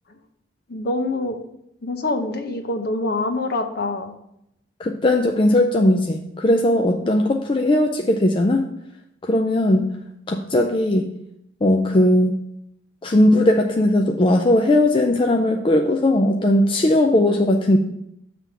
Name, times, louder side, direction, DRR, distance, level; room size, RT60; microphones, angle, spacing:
voice 1, 0.7-1.4 1.8-4.1 7.0-7.1, left 2 dB, 50° left, 7 dB, 0.7 m, -25 dB
voice 2, 4.8-8.7 9.2-10.0 10.3-11.1 11.6-12.4 13.0-17.8, left 1 dB, 25° left, 3 dB, 0.4 m, -18 dB
7.4 x 3.4 x 6.1 m, 0.80 s
head